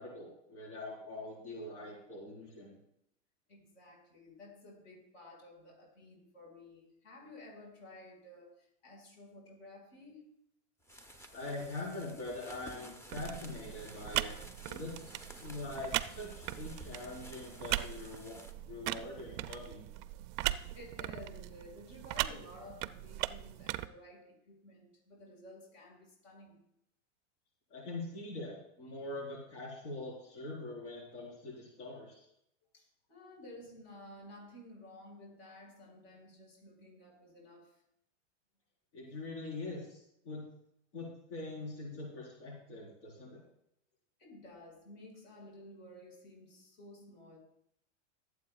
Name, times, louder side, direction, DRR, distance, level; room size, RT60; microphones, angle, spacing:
voice 1, 0.0-2.8 11.3-14.4 14.7-15.0 15.3-18.4 18.7-19.9 27.7-32.2 38.9-40.4 40.9-43.4, left 2 dB, 70° left, -4 dB, 4.5 m, -43 dB
voice 2, 3.5-10.3 20.7-26.6 32.7-37.8 44.2-47.4, left 1 dB, 55° left, 0 dB, 4.9 m, -53 dB
sound 1, 10.8-18.5, equal, 5° left, 0.8 m, -53 dB
sound 2, 13.1-23.9, right 16 dB, 40° right, 0.4 m, -39 dB
20.0 x 8.2 x 2.4 m, 0.74 s
hypercardioid pair, 130°, 37 cm